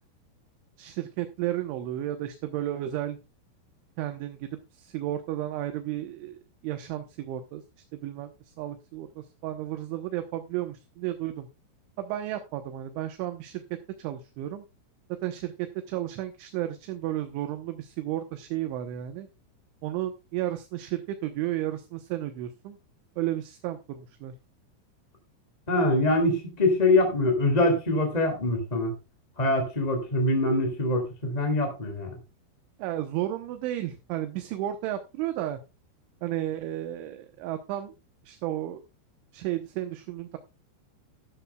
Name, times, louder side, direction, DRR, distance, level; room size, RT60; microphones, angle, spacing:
voice 1, 0.8-3.2 4.0-6.4 6.6-7.6 7.9-8.3 8.6-11.5 12.0-13.6 14.0-14.6 15.2-15.5 15.9-19.3 19.8-22.8 23.2-24.3 32.8-35.6 36.2-37.9 38.3-38.8 39.3-40.4, right 13 dB, 75° right, 7 dB, 3.2 m, -33 dB
voice 2, 25.7-28.9 29.4-32.1, left 2 dB, 15° left, 3 dB, 1.4 m, -24 dB
13.0 x 12.5 x 2.3 m, 0.27 s
omnidirectional pair, 5.9 m